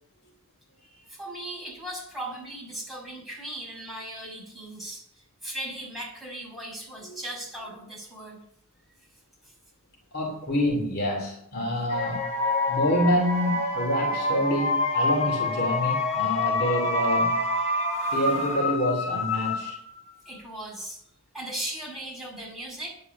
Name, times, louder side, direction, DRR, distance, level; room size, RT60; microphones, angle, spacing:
voice 1, 0.8-8.4 9.0-9.1 9.4-9.5 20.2-21.0 21.3-22.9, right 1 dB, ahead, -4 dB, 6.1 m, -38 dB
voice 2, 10.1-12.2 12.7-17.4 18.1-19.8, equal, 50° left, 1 dB, 2.9 m, -27 dB
sound 1, 11.9-20.0, left 2 dB, 30° left, 4.0 m, -27 dB
11.0 x 9.3 x 7.0 m, 0.68 s
head